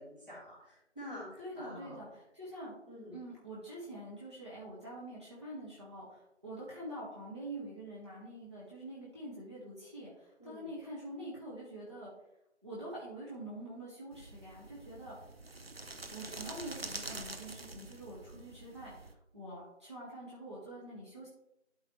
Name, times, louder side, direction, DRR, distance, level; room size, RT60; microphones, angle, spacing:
voice 1, 0.0-2.0 2.9-3.2 10.4-10.7, left 1 dB, 5° right, -15 dB, 1.8 m, -48 dB
voice 2, 1.4-2.7 3.1-12.1 12.6-15.2 16.1-21.3, right 1 dB, 25° right, -8 dB, 1.4 m, -45 dB
sound 1, 14.1-19.1, right 2 dB, 55° right, 0.9 m, -46 dB
12.0 x 4.8 x 3.0 m, 0.84 s
figure-of-eight pair, 170°, 36 cm